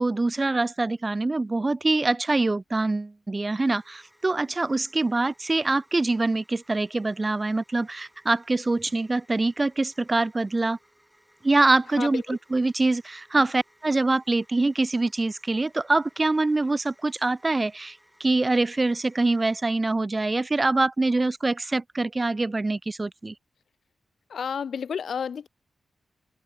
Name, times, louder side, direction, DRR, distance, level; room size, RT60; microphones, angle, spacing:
voice 1, 0.0-10.8 11.4-23.3, right 2 dB, 25° right, 0.3 m, -24 dB
sound 1, 3.6-19.7, equal, ahead, 5.4 m, -61 dB
voice 2, 12.0-12.4 24.3-25.5, left 7 dB, 75° left, 0.6 m, -31 dB
wide cardioid pair, 115°, 0 cm